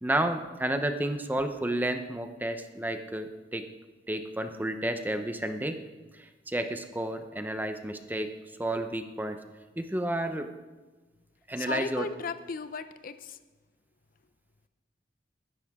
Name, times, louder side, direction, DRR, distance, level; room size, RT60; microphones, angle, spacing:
voice 1, 0.0-3.6 4.1-5.8 6.1-8.3 8.6-9.4 9.8-10.5 11.5-12.1, right 1 dB, 10° right, 7 dB, 0.7 m, -31 dB
voice 2, 11.6-13.4, left 4 dB, 50° left, 11 dB, 0.6 m, -36 dB
20.0 x 10.5 x 3.6 m, 1.2 s
head